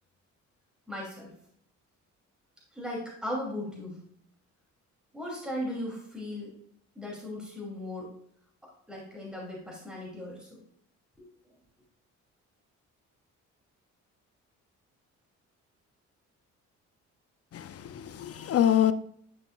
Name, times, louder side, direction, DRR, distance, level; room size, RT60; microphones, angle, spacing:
voice 1, 0.9-1.3 2.7-4.0 5.1-6.5 6.9-8.1 8.6-10.5 11.2-11.3, left 1 dB, 5° right, -3 dB, 2.7 m, -37 dB
voice 2, 17.5-18.9, left 10 dB, 50° left, 12 dB, 0.5 m, -25 dB
10.5 x 5.3 x 2.3 m, 0.65 s
cardioid pair, 90°, 30 cm